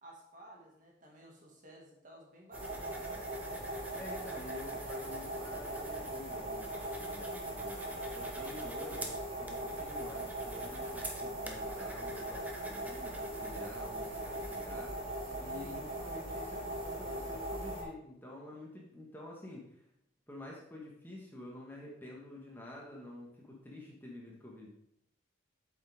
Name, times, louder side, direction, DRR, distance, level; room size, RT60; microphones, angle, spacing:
voice 1, 0.0-3.0 7.2-7.7 15.5-15.8, right 1 dB, 40° right, -1 dB, 2.1 m, -55 dB
sound 1, 2.5-14.7, right 1 dB, 10° right, 1.0 m, -50 dB
sound 2, 2.5-17.8, right 1 dB, 60° right, 3.2 m, -40 dB
voice 2, 3.9-7.8 8.1-14.9 15.4-19.6 20.3-24.7, left 1 dB, 10° left, -3 dB, 1.6 m, -49 dB
8.7 x 7.5 x 3.6 m, 0.75 s
head